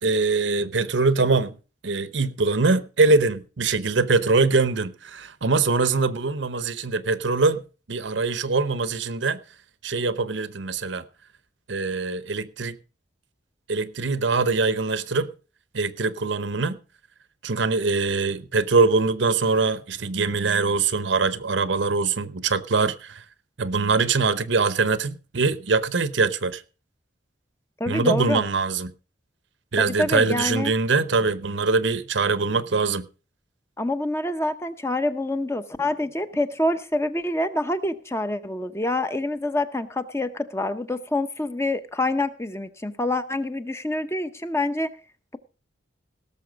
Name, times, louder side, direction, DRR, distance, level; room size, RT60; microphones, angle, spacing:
voice 1, 0.0-1.5 1.8-7.6 7.9-9.4 9.8-11.0 11.7-12.8 13.7-15.3 15.7-16.8 17.4-23.2 23.6-26.6 27.9-28.9 29.7-33.0, right 4 dB, 75° right, 0.8 m, -23 dB
voice 2, 27.8-28.4 29.8-30.7 33.8-44.9, left 1 dB, 15° left, 0.7 m, -26 dB
17.5 x 6.9 x 5.1 m
head